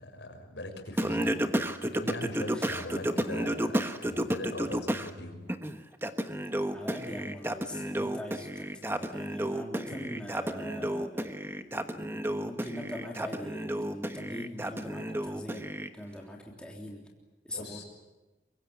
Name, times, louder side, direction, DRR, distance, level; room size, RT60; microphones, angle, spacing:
voice 1, 0.0-1.5 1.8-5.5 9.9-10.1 17.5-17.8, left 1 dB, 80° left, 4 dB, 5.7 m, -41 dB
Singing, 1.0-5.1 5.5-15.9, right 1 dB, 15° right, 1.2 m, -32 dB
voice 2, 6.7-15.6 15.9-17.0 17.4-17.8, equal, 5° left, -1 dB, 3.5 m, -42 dB
24.5 x 23.0 x 8.7 m, 1.1 s
head